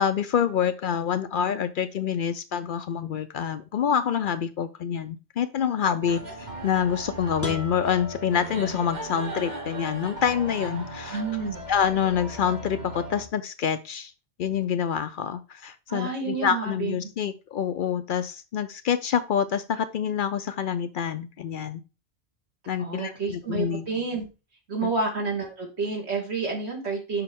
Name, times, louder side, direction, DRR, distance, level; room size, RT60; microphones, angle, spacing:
voice 1, 0.0-11.2 11.7-14.1 14.4-21.8 22.7-23.9 24.8-24.9, left 8 dB, 60° left, 12 dB, 0.6 m, -27 dB
sound 1, 6.0-13.3, right 1 dB, 45° right, 1.5 m, -37 dB
sound 2, 7.4-9.3, left 1 dB, 15° left, 1.3 m, -39 dB
voice 2, 11.1-11.6 15.9-16.9 22.8-24.2 24.7-27.2, right 4 dB, 80° right, -1 dB, 2.7 m, -29 dB
6.8 x 5.3 x 3.6 m, 0.30 s
omnidirectional pair, 1.1 m